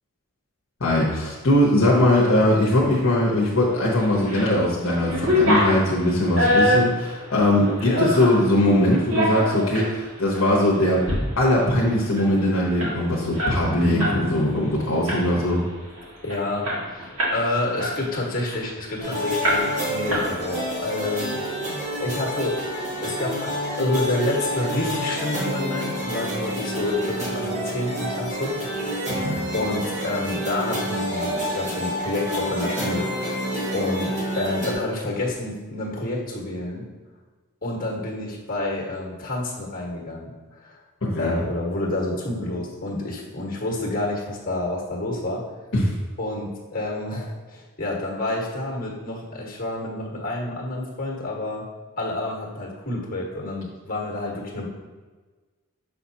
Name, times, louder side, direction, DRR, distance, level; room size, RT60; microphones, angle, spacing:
voice 1, 0.8-11.1 11.4-15.6 29.2-29.4 41.0-41.4 45.7-45.9, left 1 dB, 60° left, -4 dB, 1.0 m, -20 dB
sound 1, 4.0-4.5 4.8-8.4 8.9-9.9 10.3-10.5 10.9-11.2 11.5-11.6 11.9-14.2 14.5-14.7 15.1-15.5 16.0-16.1 16.3-17.4 17.8-19.0 19.4-19.8 20.1-20.7, equal, 70° right, 1.8 m, -24 dB
voice 2, 13.8-14.3 16.2-21.3 22.0-22.6 23.0-28.5 29.1-29.2 29.5-36.8 37.6-40.8 41.2-45.4 46.2-51.6 52.0-54.7, left 2 dB, 40° left, -2 dB, 1.4 m, -29 dB
sound 2, 19.0-34.7, equal, 35° right, 1.3 m, -28 dB
6.7 x 5.8 x 2.8 m, 1.3 s
head